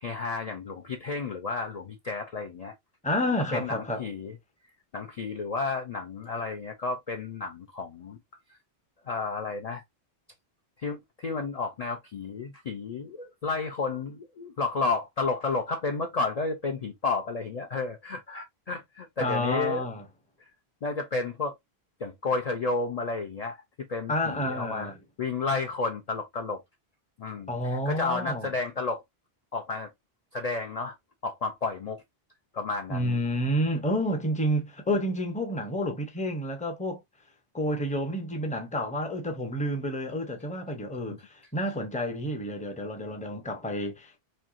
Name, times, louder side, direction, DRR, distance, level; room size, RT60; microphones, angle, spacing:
voice 1, 0.0-2.7 3.5-4.3 4.9-8.2 9.1-9.8 10.8-19.8 20.8-21.5 22.0-23.6 23.9-24.9 25.2-26.6 27.2-29.0 29.5-29.9 30.3-30.9 31.2-32.0 32.5-33.2, left 3 dB, 45° left, 0.5 m, -31 dB
voice 2, 3.0-4.0 19.2-20.0 24.1-25.0 27.5-28.5 32.9-37.0 37.5-44.2, equal, 10° left, 0.6 m, -29 dB
4.4 x 2.7 x 2.4 m
omnidirectional pair, 1.1 m